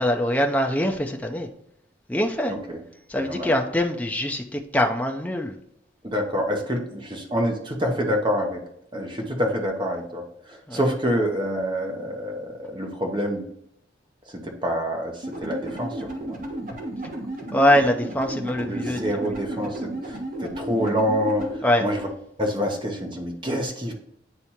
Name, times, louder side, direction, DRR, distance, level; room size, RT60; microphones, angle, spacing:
voice 1, 0.0-1.5 2.1-2.5 3.1-5.6 10.7-10.8 17.5-19.4 21.6-21.8, left 1 dB, 10° left, 3 dB, 0.5 m, -23 dB
voice 2, 2.5-2.8 3.2-3.5 6.0-8.6 8.9-13.5 14.3-15.1 15.4-15.9 16.2-16.4 18.6-21.5 21.8-22.1 22.4-23.9, equal, 25° right, 2 dB, 1.0 m, -27 dB
sound 1, 15.2-21.6, right 1 dB, 45° right, 1.2 m, -33 dB
9.7 x 3.4 x 2.9 m, 0.75 s
head